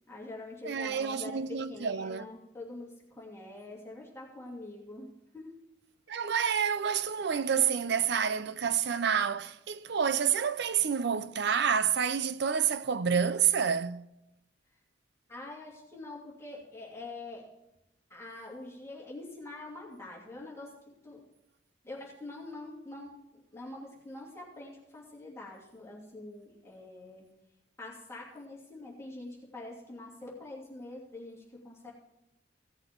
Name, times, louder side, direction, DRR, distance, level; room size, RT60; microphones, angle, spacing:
voice 1, 0.1-5.5 15.3-17.5 18.1-20.7 21.0-21.2 21.8-27.3 27.8-31.9, left 2 dB, 15° left, 2.6 m, -45 dB
voice 2, 0.6-2.3 6.1-14.1, right 7 dB, 65° right, 0.5 m, -28 dB
16.5 x 6.5 x 4.5 m
head